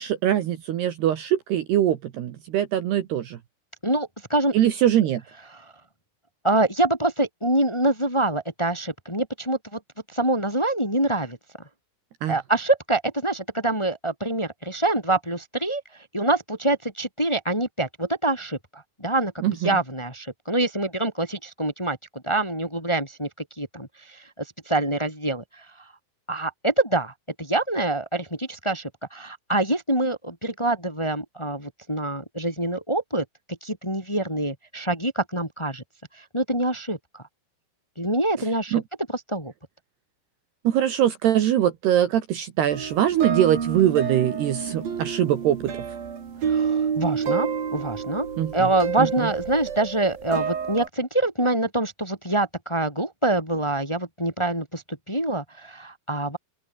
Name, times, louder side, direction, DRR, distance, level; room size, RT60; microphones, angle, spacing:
voice 1, 0.0-3.4 4.5-5.2 12.2-12.3 19.4-19.8 38.7-38.8 40.6-45.7 48.4-48.7 49.0-49.1, right 11 dB, 65° right, 3.2 m, -22 dB
voice 2, 3.8-4.5 5.5-5.6 6.4-9.8 10.1-11.4 12.3-15.8 16.1-22.0 22.2-23.3 23.6-25.6 26.3-35.8 36.2-37.2 38.0-38.8 39.1-39.5 46.5-56.4, right 2 dB, 5° left, 3.1 m, -25 dB
sound 1, 42.7-50.9, right 7 dB, 50° right, 5.0 m, -29 dB
open air
omnidirectional pair, 5.8 m